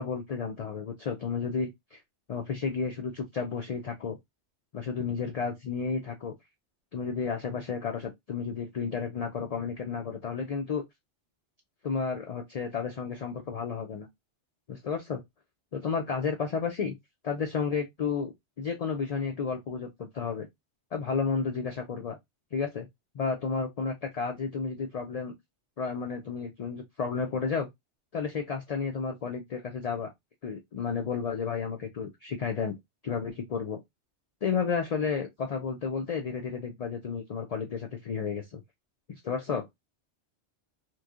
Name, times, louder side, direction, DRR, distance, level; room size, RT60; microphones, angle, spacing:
voice 1, 0.0-2.0 2.3-4.2 4.7-6.3 6.9-10.8 11.8-14.1 14.7-15.2 15.7-16.9 17.2-20.5 20.9-22.2 22.5-22.9 23.1-25.3 25.8-27.7 28.1-30.1 30.4-32.7 33.0-33.8 34.4-38.6 39.1-39.7, left 5 dB, 65° left, 0.3 m, -32 dB
3.0 x 2.6 x 2.3 m
omnidirectional pair, 1.2 m